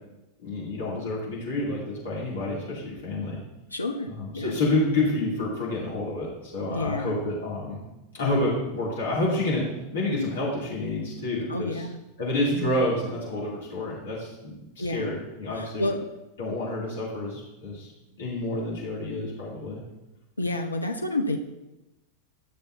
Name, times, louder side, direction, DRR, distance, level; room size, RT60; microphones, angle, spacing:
voice 1, 0.4-3.4 4.1-7.8 8.1-9.7 9.9-11.9 12.2-15.9 16.4-17.9 18.2-19.8, left 2 dB, 65° left, -6 dB, 2.8 m, -29 dB
voice 2, 3.7-4.6 6.7-7.3 11.5-12.0 14.8-15.1 15.5-16.0 20.4-21.4, left 1 dB, 80° left, 4 dB, 0.6 m, -29 dB
12.5 x 6.8 x 2.7 m, 0.97 s
figure-of-eight pair, 90°, 0 cm